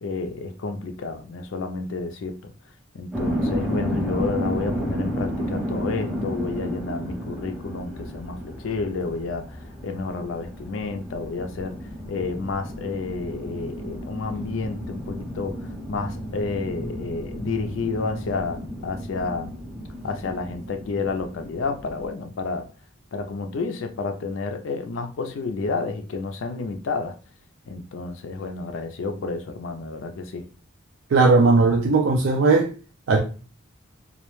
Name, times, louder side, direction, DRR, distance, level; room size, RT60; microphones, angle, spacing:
voice 1, 0.0-2.5 2.9-11.8 12.1-19.5 20.0-22.6 23.1-27.2 27.7-30.5, left 4 dB, 65° left, 0.4 m, -30 dB
sound 1, 3.1-22.1, equal, 5° right, 0.5 m, -32 dB
voice 2, 31.1-32.7 33.1-33.2, right 3 dB, 65° right, 0.4 m, -17 dB
2.3 x 2.1 x 3.0 m
head